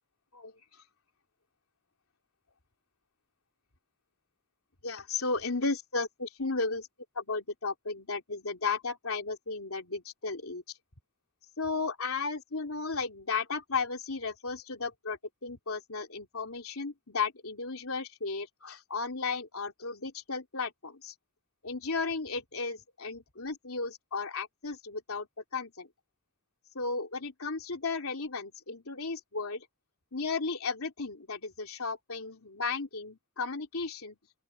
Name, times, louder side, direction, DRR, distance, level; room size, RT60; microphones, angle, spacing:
voice 1, 4.8-6.9 7.1-10.6 11.6-21.1 21.6-25.3 25.5-25.9 26.7-29.7 30.1-34.2, left 4 dB, 85° left, 3.1 m, -34 dB
open air
head